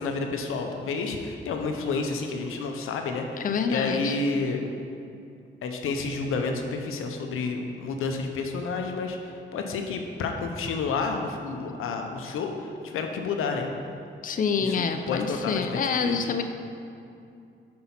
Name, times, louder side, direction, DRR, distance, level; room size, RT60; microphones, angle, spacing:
voice 1, 0.0-4.6 5.6-13.7 14.6-16.3, left 4 dB, 85° left, 4 dB, 0.6 m, -30 dB
voice 2, 3.4-4.2 14.2-16.4, left 5 dB, 40° left, 7 dB, 0.5 m, -27 dB
5.6 x 4.3 x 5.7 m, 2.5 s
cardioid pair, 60°, 21 cm